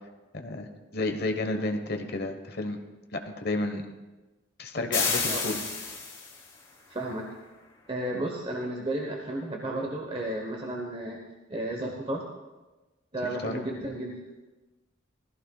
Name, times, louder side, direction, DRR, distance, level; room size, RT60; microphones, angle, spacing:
voice 1, 0.3-0.7 0.9-2.8 3.1-3.8 4.6-5.6 13.2-13.6, left 2 dB, 50° left, 5 dB, 1.2 m, -31 dB
sound 1, 4.9-6.5, left 4 dB, 25° left, 3.5 m, -30 dB
voice 2, 6.9-7.3 7.9-11.2 11.5-12.2 13.1-14.2, right 1 dB, 25° right, 0 dB, 1.0 m, -33 dB
17.5 x 15.0 x 2.4 m, 1.1 s
head